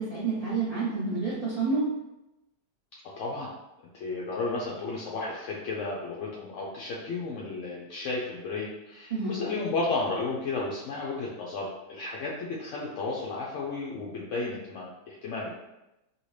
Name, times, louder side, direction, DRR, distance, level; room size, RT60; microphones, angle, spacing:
voice 1, 0.0-1.9 9.1-9.3, right 4 dB, 75° right, -8 dB, 0.3 m, -28 dB
voice 2, 3.2-3.5 3.9-15.6, left 3 dB, 70° left, -4 dB, 0.7 m, -33 dB
2.8 x 2.7 x 3.1 m, 0.94 s
omnidirectional pair, 1.7 m